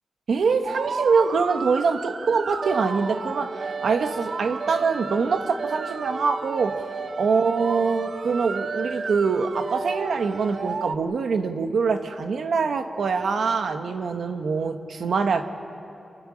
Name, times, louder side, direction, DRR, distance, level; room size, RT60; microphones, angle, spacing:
voice 1, 0.3-6.9 7.2-15.4, right 5 dB, 85° right, 7 dB, 1.2 m, -24 dB
sound 1, 0.6-11.0, right 4 dB, 55° right, 0.7 m, -32 dB
29.5 x 12.5 x 8.8 m, 2.8 s
wide cardioid pair, 155°, 0 cm